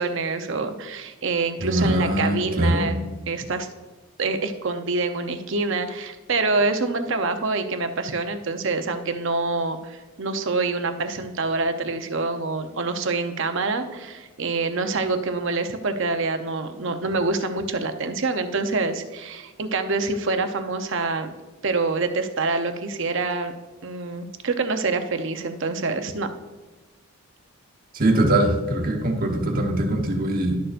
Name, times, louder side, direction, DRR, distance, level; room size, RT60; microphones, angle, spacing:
voice 1, 0.0-2.9 3.3-3.7 4.2-21.3 21.6-23.5 23.8-26.3, right 3 dB, 60° right, 7 dB, 0.7 m, -26 dB
voice 2, 1.6-2.9 27.9-30.6, right 1 dB, 40° right, 2 dB, 1.2 m, -22 dB
11.5 x 6.7 x 2.5 m, 1.2 s
head